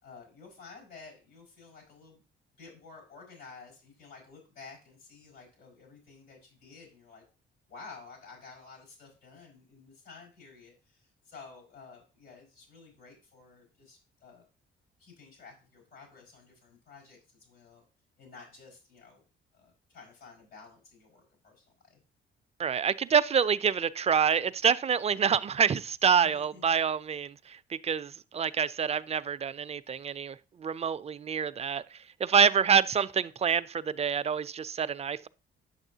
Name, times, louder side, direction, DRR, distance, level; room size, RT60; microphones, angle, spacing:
voice 1, 0.0-2.2 2.6-7.2 7.7-14.5 15.0-17.9 18.2-19.2 19.5-22.0 26.2-26.8, left 4 dB, 85° left, 4.9 m, -52 dB
voice 2, 22.6-35.3, right 7 dB, 30° right, 0.4 m, -27 dB
9.9 x 6.6 x 2.7 m
cardioid pair, 90°, 20 cm